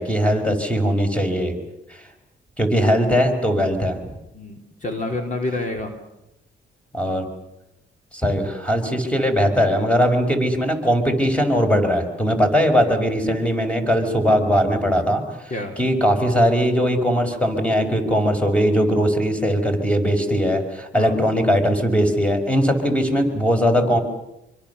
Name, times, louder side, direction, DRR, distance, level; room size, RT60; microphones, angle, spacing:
voice 1, 0.0-1.5 2.6-4.0 6.9-7.3 8.1-24.0, equal, 5° left, 5 dB, 5.4 m, -20 dB
voice 2, 4.3-5.9 15.5-15.7 20.9-21.2, left 2 dB, 40° left, 3 dB, 3.8 m, -28 dB
26.5 x 24.5 x 7.0 m, 0.88 s
cardioid pair, 90°, 20 cm